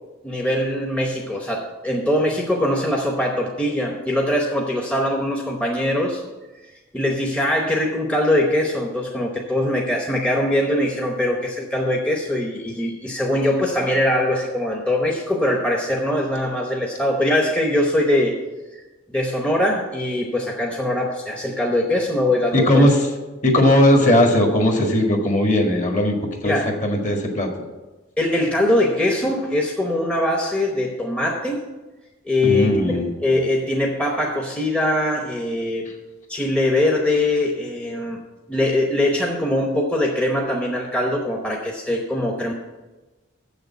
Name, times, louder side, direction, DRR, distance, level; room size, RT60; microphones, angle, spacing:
voice 1, 0.2-6.2 6.9-18.4 18.7-18.8 19.1-22.9 26.4-26.7 28.2-31.6 32.2-35.9 36.3-38.2 38.5-42.5, left 1 dB, 5° left, -1 dB, 0.9 m, -22 dB
voice 2, 22.5-23.0 23.4-26.2 26.4-26.5 26.8-27.5 32.4-33.1, left 1 dB, 35° left, 2 dB, 1.6 m, -17 dB
7.6 x 6.7 x 8.1 m, 1.2 s
head